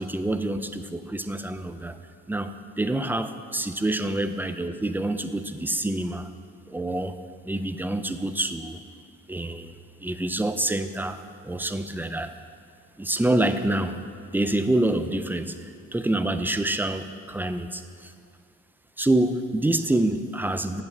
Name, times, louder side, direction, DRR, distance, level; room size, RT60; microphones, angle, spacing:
voice 1, 0.0-2.0 2.3-6.3 6.7-7.2 7.4-8.8 9.3-9.7 10.0-11.2 11.4-12.3 13.0-14.0 14.3-18.1 19.0-20.8, right 1 dB, 5° right, 9 dB, 0.4 m, -27 dB
8.7 x 5.8 x 6.7 m, 2.2 s
cardioid pair, 90°, 30 cm